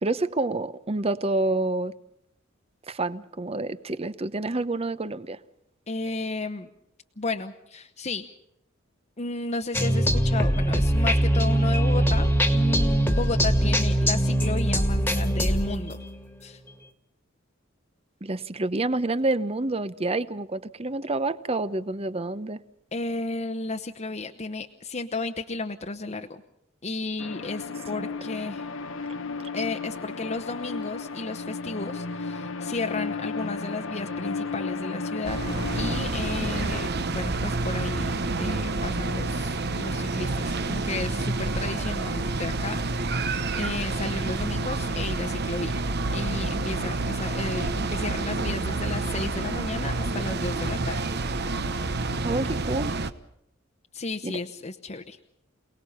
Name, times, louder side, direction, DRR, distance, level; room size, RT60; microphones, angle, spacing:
voice 1, 0.0-1.9 2.9-5.4 18.2-22.6 28.0-28.1 52.2-52.9 54.2-54.4, right 2 dB, 30° right, 14 dB, 0.9 m, -28 dB
voice 2, 5.9-6.7 7.2-8.3 9.2-16.0 16.4-16.6 22.9-26.4 26.8-28.7 29.5-35.4 35.7-45.8 46.1-51.0 53.9-55.2, left 3 dB, 35° left, 5 dB, 1.0 m, -33 dB
sound 1, 9.7-16.2, equal, 10° left, 1.8 m, -22 dB
sound 2, 27.2-36.9, left 4 dB, 70° left, 0.9 m, -34 dB
sound 3, 35.2-53.1, right 3 dB, 55° right, 1.1 m, -28 dB
28.0 x 19.0 x 5.6 m, 0.79 s
head